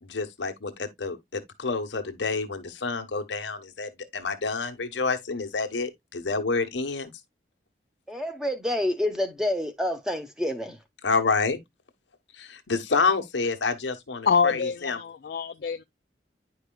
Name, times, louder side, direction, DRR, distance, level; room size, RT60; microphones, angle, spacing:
voice 1, 0.0-7.1 11.0-11.6 12.3-15.0, left 4 dB, 85° left, 1.1 m, -28 dB
voice 2, 8.1-10.8, left 1 dB, 5° right, 0.9 m, -28 dB
voice 3, 14.3-15.8, left 5 dB, 55° left, 0.3 m, -25 dB
10.0 x 4.9 x 2.2 m
head